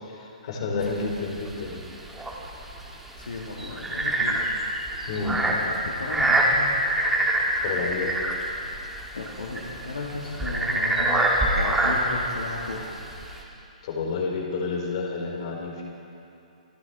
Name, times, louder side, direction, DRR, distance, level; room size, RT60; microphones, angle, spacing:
voice 1, 0.1-1.8 5.1-5.4 7.6-8.2 13.8-15.8, left 4 dB, 50° left, -1 dB, 3.6 m, -30 dB
sound 1, 0.8-13.4, right 1 dB, 5° right, 1.9 m, -26 dB
voice 2, 3.2-4.5 5.5-6.7 9.1-12.9, left 3 dB, 85° left, -3 dB, 2.0 m, -34 dB
26.0 x 13.5 x 3.5 m, 2.7 s
hypercardioid pair, 140°, 4 cm